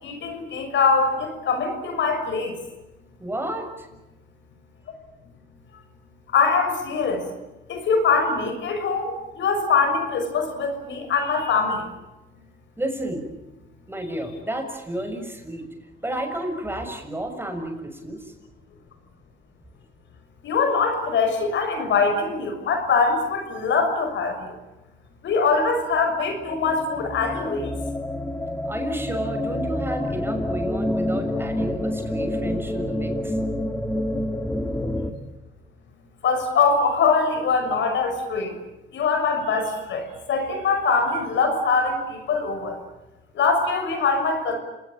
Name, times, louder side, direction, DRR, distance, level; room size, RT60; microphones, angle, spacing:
voice 1, 0.0-2.5 6.3-7.3 7.7-11.8 20.4-24.5 25.2-27.7 36.2-38.6 38.9-42.8 43.3-44.6, left 4 dB, 70° left, 5 dB, 6.5 m, -23 dB
voice 2, 3.2-3.9 12.8-13.2 13.9-15.6 16.0-18.3 28.7-33.4, right 1 dB, 10° right, 4 dB, 6.7 m, -31 dB
sound 1, 26.0-35.1, left 1 dB, 10° left, 2.9 m, -28 dB
29.0 x 19.0 x 9.0 m, 1.0 s
cardioid pair, 90°, 20 cm